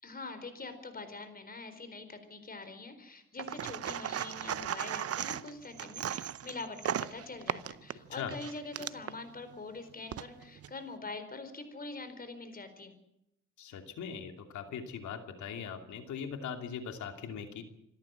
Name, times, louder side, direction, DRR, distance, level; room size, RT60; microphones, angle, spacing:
voice 1, 0.0-12.9, left 3 dB, 30° left, 10 dB, 4.3 m, -44 dB
searching screws from box, 3.4-9.2 9.9-10.7, right 10 dB, 50° right, 0.8 m, -37 dB
voice 2, 13.6-17.6, left 7 dB, 75° left, 5 dB, 2.8 m, -40 dB
26.0 x 13.5 x 7.6 m, 0.84 s
cardioid pair, 90°, 30 cm